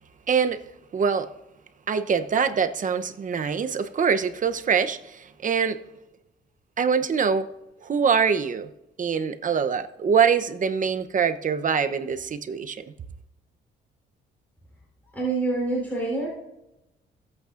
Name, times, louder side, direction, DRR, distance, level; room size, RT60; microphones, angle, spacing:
voice 1, 0.3-0.6 0.9-1.3 1.9-5.8 6.8-7.5 7.8-8.7 9.0-12.8, right 6 dB, 40° right, 0.8 m, -24 dB
voice 2, 15.1-16.3, right 3 dB, 10° left, 3.7 m, -26 dB
17.5 x 8.4 x 2.5 m
cardioid pair, 90°, 20 cm